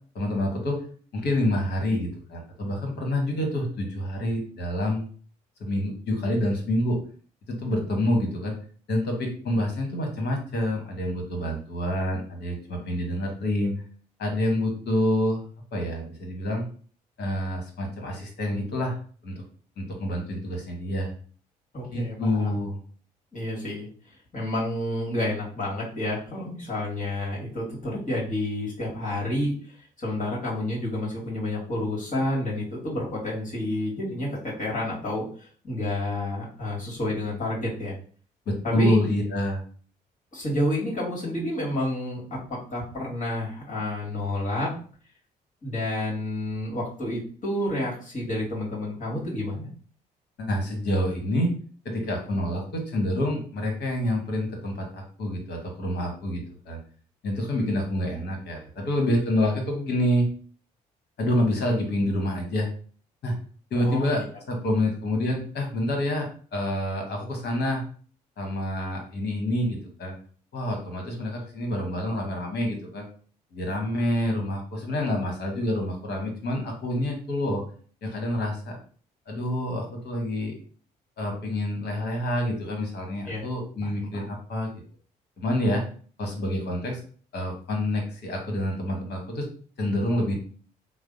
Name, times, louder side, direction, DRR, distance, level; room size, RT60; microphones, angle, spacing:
voice 1, 0.1-0.8 1.1-5.1 5.6-7.0 7.5-8.5 8.9-13.7 14.2-15.4 15.7-16.6 17.2-19.0 19.2-19.4 19.8-21.1 21.9-22.8 38.5-39.6 50.4-51.5 51.8-56.8 57.2-60.3 61.2-62.7 63.2-63.3 63.7-64.2 64.5-67.8 68.4-70.1 70.5-73.1 73.5-77.6 78.0-78.8 79.3-80.5 81.2-84.7 85.4-85.8 86.2-87.0 87.3-89.5 89.8-90.3, left 1 dB, 55° left, 2 dB, 1.3 m, -27 dB
voice 2, 21.7-22.6 23.3-23.9 24.3-29.5 30.0-38.0 38.6-39.0 40.3-44.7 45.6-49.7 63.7-64.2 83.3-83.4 83.8-84.3, left 1 dB, 40° left, -4 dB, 1.7 m, -30 dB
3.2 x 2.0 x 3.9 m, 0.43 s
hypercardioid pair, 45°, 20 cm